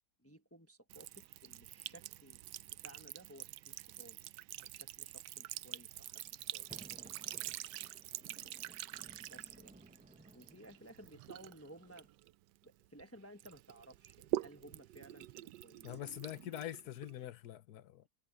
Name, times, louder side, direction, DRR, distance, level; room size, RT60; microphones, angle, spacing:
voice 1, 0.2-2.4 2.8-4.2 4.6-6.9 9.3-9.7 10.3-12.1 12.6-16.2, right 1 dB, 10° left, 0.9 m, -57 dB
Sink (filling or washing) / Trickle dribble, 0.9-13.0 13.4-17.3, right 15 dB, 80° right, 1.2 m, -46 dB
sound 1, 5.5-12.1, right 1 dB, 10° right, 0.4 m, -60 dB
voice 2, 15.8-18.0, left 13 dB, 70° left, 1.3 m, -44 dB
omnidirectional pair, 1.8 m